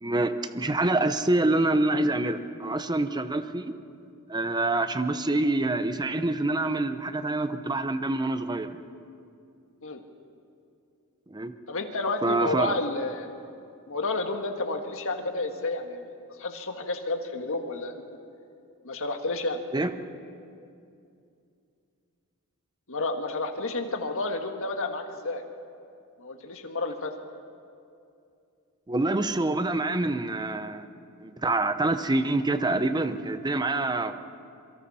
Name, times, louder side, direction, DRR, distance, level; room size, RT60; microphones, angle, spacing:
voice 1, 0.0-3.7 4.3-8.8 11.3-11.5 12.2-12.8 19.7-19.9 28.9-30.9 31.2-34.1, right 2 dB, 20° right, 10 dB, 0.8 m, -26 dB
voice 2, 11.7-13.3 13.9-16.1 16.4-18.0 18.8-19.6 22.9-25.4 26.2-27.1, left 2 dB, 65° left, 5 dB, 1.7 m, -31 dB
27.0 x 24.0 x 4.3 m, 2.5 s
head